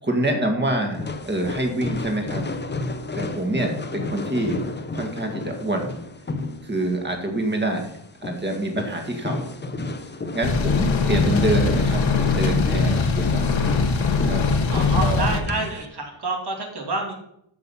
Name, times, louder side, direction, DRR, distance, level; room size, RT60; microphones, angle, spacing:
voice 1, 0.0-2.4 3.2-4.6 4.9-5.9 6.6-7.9 8.2-9.5 10.3-12.0 12.3-13.6 14.1-14.4 14.8-15.4, right 1 dB, 20° right, 3 dB, 2.1 m, -26 dB
sound 1, 1.0-15.9, left 3 dB, 25° left, 0.7 m, -32 dB
sound 2, 10.4-15.4, left 4 dB, 75° left, 1.5 m, -21 dB
voice 2, 14.7-17.1, right 3 dB, 55° right, 2 dB, 2.7 m, -28 dB
13.5 x 6.0 x 5.7 m, 0.75 s
wide cardioid pair, 175°, 46 cm